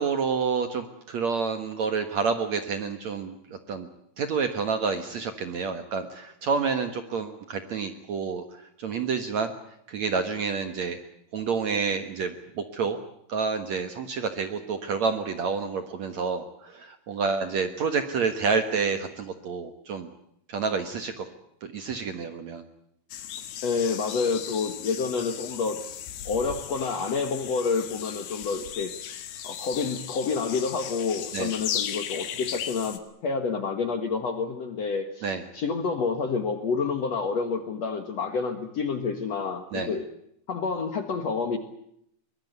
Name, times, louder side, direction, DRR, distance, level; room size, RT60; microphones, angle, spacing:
voice 1, 0.0-3.9 4.2-9.5 9.9-11.0 11.3-13.0 13.3-20.1 20.5-21.3 21.6-22.6 31.3-31.5 35.2-35.4 39.7-40.0, right 5 dB, 55° right, 8 dB, 2.2 m, -29 dB
sound 1, 23.1-33.0, left 10 dB, 75° left, 3.8 m, -36 dB
voice 2, 23.6-35.3 35.5-40.1 40.5-41.6, left 5 dB, 55° left, 8 dB, 2.1 m, -29 dB
23.5 x 21.0 x 8.0 m, 0.73 s
omnidirectional pair, 4.7 m